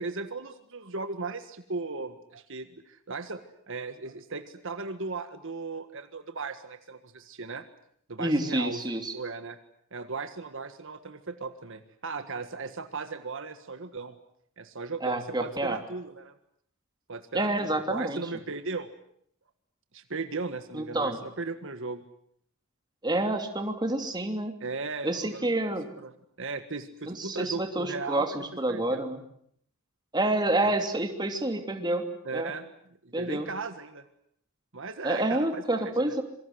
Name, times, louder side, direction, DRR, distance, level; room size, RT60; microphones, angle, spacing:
voice 1, 0.0-3.4 3.7-7.6 8.1-8.8 9.1-9.6 9.9-14.2 14.6-16.3 17.1-18.9 19.9-22.0 24.6-25.5 26.0-28.4 28.7-29.1 30.6-30.7 32.2-32.7 33.0-34.0 34.7-36.2, right 3 dB, 60° right, 9 dB, 1.6 m, -37 dB
voice 2, 8.2-9.1 15.0-15.8 17.3-18.2 20.7-21.2 23.0-24.5 25.0-25.9 27.1-29.2 30.1-32.0 32.3-32.5 33.1-33.5 35.0-36.2, right 1 dB, 20° right, 5 dB, 2.9 m, -28 dB
26.5 x 23.5 x 8.0 m, 0.67 s
head